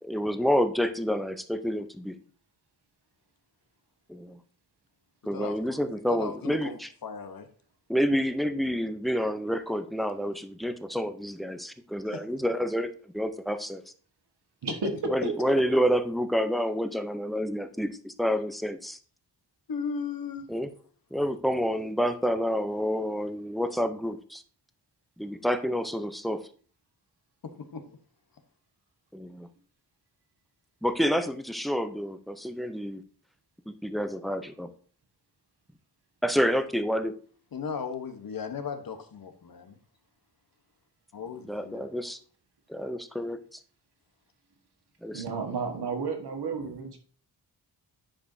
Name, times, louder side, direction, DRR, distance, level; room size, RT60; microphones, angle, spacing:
voice 1, 0.0-2.1 4.1-4.4 5.3-6.9 7.9-13.8 15.1-19.0 20.5-20.7 21.1-24.4 25.2-26.4 29.1-29.5 30.8-33.0 33.7-34.7 36.2-37.2 41.4-42.2 42.7-43.4 45.0-45.2, equal, ahead, 10 dB, 0.6 m, -28 dB
voice 2, 5.3-5.8 6.1-7.5 12.1-12.2 19.7-20.5 27.4-28.0 37.5-39.8 41.1-41.8 46.6-46.7, left 5 dB, 55° left, 7 dB, 1.1 m, -36 dB
voice 3, 45.1-47.0, right 5 dB, 70° right, 4 dB, 1.6 m, -32 dB
10.0 x 5.0 x 2.7 m, 0.43 s
wide cardioid pair, 90°, 41 cm